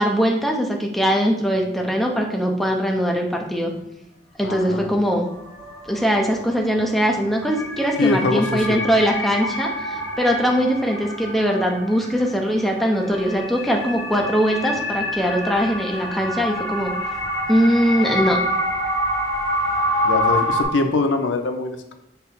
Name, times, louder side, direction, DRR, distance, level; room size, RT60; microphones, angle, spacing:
voice 1, 0.0-3.7 4.4-5.3 5.9-17.0 17.5-18.4, equal, ahead, 1 dB, 0.5 m, -21 dB
sound 1, 1.6-1.7 4.8-4.9 5.3-20.6, equal, 65° left, 1.5 m, -27 dB
voice 2, 4.4-4.9 8.0-8.8 20.0-21.9, left 3 dB, 90° left, 7 dB, 0.5 m, -23 dB
5.4 x 2.0 x 4.1 m, 0.88 s
head